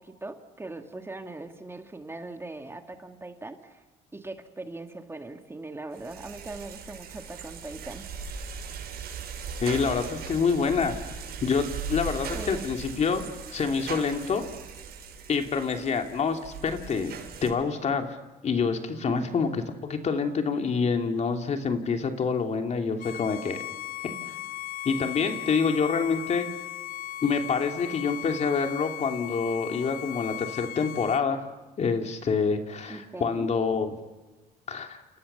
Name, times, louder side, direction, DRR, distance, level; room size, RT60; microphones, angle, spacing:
voice 1, 0.0-3.8 4.1-8.1 12.3-12.7 19.1-19.3 32.9-33.5, right 2 dB, 15° right, 6 dB, 2.1 m, -40 dB
sound 1, 5.9-17.5, right 5 dB, 65° right, 6.3 m, -39 dB
voice 2, 9.6-11.0 11.4-13.3 13.5-14.5 15.3-17.1 17.4-18.2 18.4-19.5 19.8-23.6 24.0-24.4 24.8-26.5 27.2-31.4 31.8-33.9 34.7-35.0, left 5 dB, 40° left, 5 dB, 2.9 m, -27 dB
Bowed string instrument, 23.0-31.2, left 14 dB, 55° left, 1.0 m, -37 dB
29.5 x 28.5 x 7.0 m, 1.2 s
cardioid pair, 110°, 17 cm